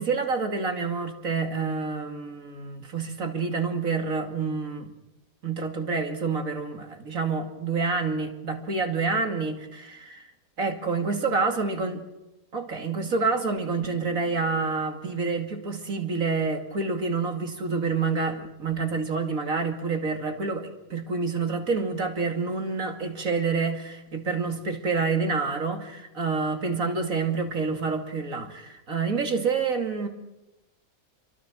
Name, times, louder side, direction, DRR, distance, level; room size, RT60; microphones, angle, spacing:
voice 1, 0.0-4.9 5.4-10.3 10.6-12.0 12.5-30.1, right 4 dB, 70° right, 2.9 m, -28 dB
27.0 x 24.0 x 6.3 m
omnidirectional pair, 1.5 m